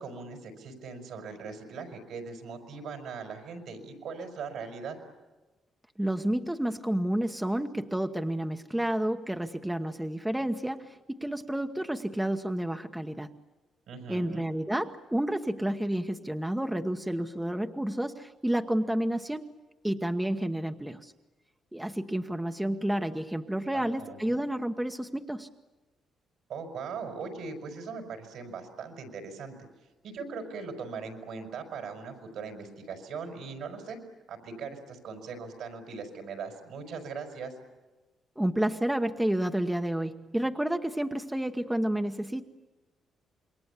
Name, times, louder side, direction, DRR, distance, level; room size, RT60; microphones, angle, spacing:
voice 1, 0.0-5.0 13.9-14.4 23.7-24.4 26.5-29.5 30.0-34.0 34.3-37.5, right 5 dB, 75° right, 5 dB, 5.2 m, -40 dB
voice 2, 6.0-13.3 14.1-19.5 19.8-21.1 21.7-25.5 38.4-42.4, right 1 dB, 5° right, 6 dB, 1.1 m, -30 dB
27.0 x 22.0 x 8.4 m, 1.1 s
cardioid pair, 90°, 0 cm